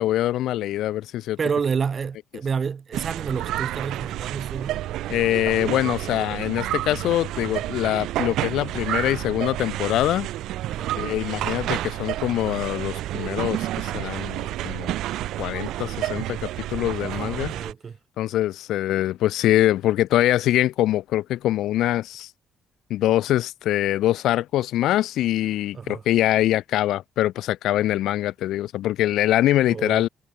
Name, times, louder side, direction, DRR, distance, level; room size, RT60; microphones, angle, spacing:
voice 1, 0.0-1.4 5.1-10.3 11.0-14.9 15.4-17.5 18.2-22.3 22.9-30.1, left 14 dB, 85° left, 0.8 m, -23 dB
voice 2, 1.4-4.8 10.7-10.9 17.1-18.0 25.7-26.0 29.7-30.1, right 6 dB, 45° right, 2.4 m, -29 dB
sound 1, 2.9-17.7, right 14 dB, 90° right, 4.0 m, -30 dB
cardioid pair, 90°, 0 cm